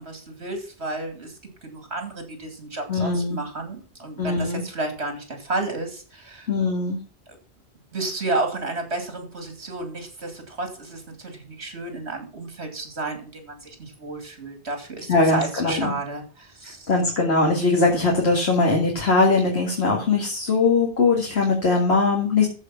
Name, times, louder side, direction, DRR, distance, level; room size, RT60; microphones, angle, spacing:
voice 1, 0.0-1.3 1.6-6.5 7.9-16.9, right 2 dB, 80° right, 6 dB, 2.9 m, -32 dB
voice 2, 2.9-3.4 4.2-4.6 6.5-7.0 15.1-15.9 16.6-22.5, left 3 dB, 70° left, 0 dB, 2.3 m, -21 dB
14.0 x 4.9 x 5.7 m, 0.39 s
omnidirectional pair, 1.1 m